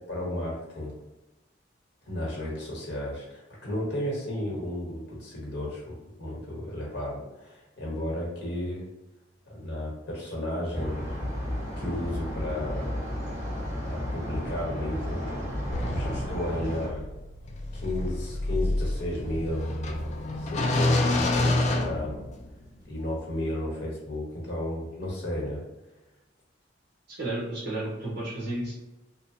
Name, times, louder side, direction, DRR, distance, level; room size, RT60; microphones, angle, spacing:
voice 1, 0.1-1.0 2.1-8.9 9.5-11.0 11.8-13.1 13.8-15.3 15.8-17.0 17.7-19.7 20.4-22.2 22.8-25.6, left 1 dB, 65° left, -4 dB, 1.0 m, -33 dB
sound 1, 10.7-16.9, equal, 20° right, 1.4 m, -33 dB
sound 2, 15.7-22.7, left 2 dB, 40° left, 0.3 m, -28 dB
voice 2, 27.1-28.7, right 1 dB, 60° right, -6 dB, 0.8 m, -32 dB
2.8 x 2.1 x 2.7 m, 1.1 s
head